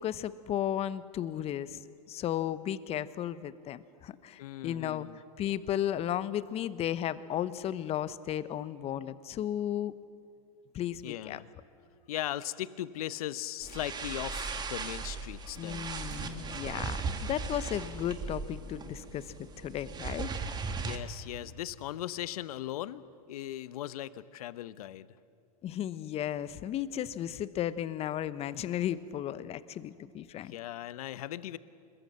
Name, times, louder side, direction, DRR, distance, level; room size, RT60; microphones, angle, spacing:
voice 1, 0.0-1.8 2.1-5.1 5.4-9.9 10.7-11.4 15.6-20.3 25.6-30.5, left 11 dB, 30° left, 15 dB, 1.0 m, -34 dB
voice 2, 4.4-5.2 11.0-11.5 12.1-15.9 20.8-25.1 30.4-31.6, left 13 dB, 70° left, 16 dB, 0.9 m, -38 dB
sound 1, 12.8-13.4 13.7-13.8 14.0-14.1 14.6-17.6, right 4 dB, 50° right, 5.3 m, -51 dB
sound 2, 13.6-21.0, right 4 dB, 20° right, 2.0 m, -38 dB
26.5 x 22.0 x 7.6 m, 2.5 s
hypercardioid pair, 115°, 20 cm